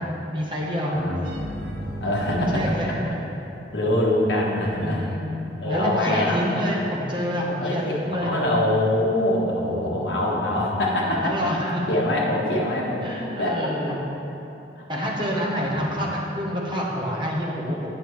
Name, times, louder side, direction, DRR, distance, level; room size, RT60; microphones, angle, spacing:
voice 1, 0.3-0.9 2.3-3.0 4.8-5.2 5.5-8.3 11.2-11.8 13.0-14.0 14.9-17.9, equal, 25° right, -3 dB, 1.1 m, -27 dB
voice 2, 0.9-1.3 2.0-2.7 3.7-5.1 5.6-6.5 7.6-11.3 11.9-13.0 13.4-13.6 13.9-14.0 14.8-14.9 15.8-15.9, left 1 dB, 70° left, -4 dB, 1.3 m, -24 dB
sound 1, 1.2-4.2, equal, 85° right, 0.9 m, -36 dB
8.5 x 6.6 x 3.2 m, 2.9 s
head